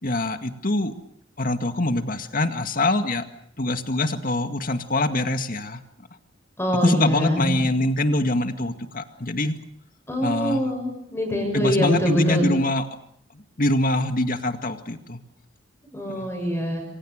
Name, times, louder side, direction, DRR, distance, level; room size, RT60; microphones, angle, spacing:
voice 1, 0.0-0.9 1.4-3.2 3.6-5.8 6.7-9.6 10.2-10.7 11.5-12.8 13.3-15.2 16.1-16.3, left 1 dB, 50° left, 8 dB, 2.1 m, -24 dB
voice 2, 6.6-7.6 10.1-12.5 15.9-16.8, equal, 15° left, 0 dB, 7.5 m, -24 dB
28.0 x 24.5 x 6.6 m, 0.69 s
head